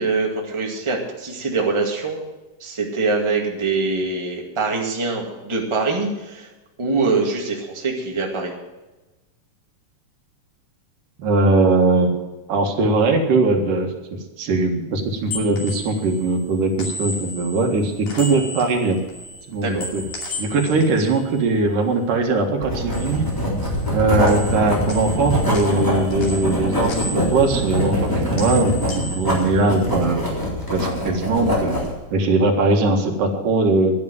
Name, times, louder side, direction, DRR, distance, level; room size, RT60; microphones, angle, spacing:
voice 1, 0.0-2.3 2.6-6.5 6.8-8.5 19.6-19.9, right 3 dB, 10° right, 0 dB, 1.6 m, -23 dB
voice 2, 11.2-12.1 12.5-13.9 14.4-19.0 19.5-20.0 20.4-23.3 23.9-30.2 30.7-31.7 32.1-33.9, right 3 dB, 85° right, 3 dB, 3.4 m, -20 dB
sound 1, 15.0-22.3 22.6-24.0 24.2-30.2 30.6-31.9, equal, 65° left, 4.1 m, -36 dB
Writing, 22.6-32.0, equal, 5° left, 3.2 m, -23 dB
11.0 x 10.5 x 7.7 m, 1.1 s
omnidirectional pair, 3.7 m